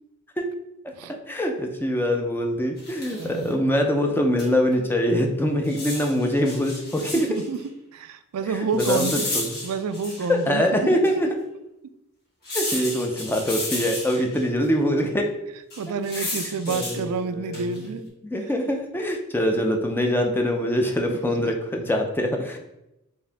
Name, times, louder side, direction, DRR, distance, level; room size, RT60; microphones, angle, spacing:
voice 1, 1.3-7.3 8.7-9.4 10.3-11.3 12.5-15.3 16.2-16.3 16.7-17.7 18.2-22.6, equal, 10° left, 2 dB, 0.4 m, -24 dB
sound 1, 2.8-3.4 4.4-4.5 4.7-4.8 5.6-7.5 8.8-10.4 11.0-11.1 12.4-14.4 15.7-17.0 17.5-17.8, left 2 dB, 50° left, 1.5 m, -32 dB
voice 2, 3.1-3.6 7.3-9.3 9.6-10.6 12.7-12.9 15.8-18.0 21.1-21.5, right 4 dB, 90° right, 10 dB, 0.4 m, -29 dB
4.6 x 2.7 x 3.4 m, 0.89 s
head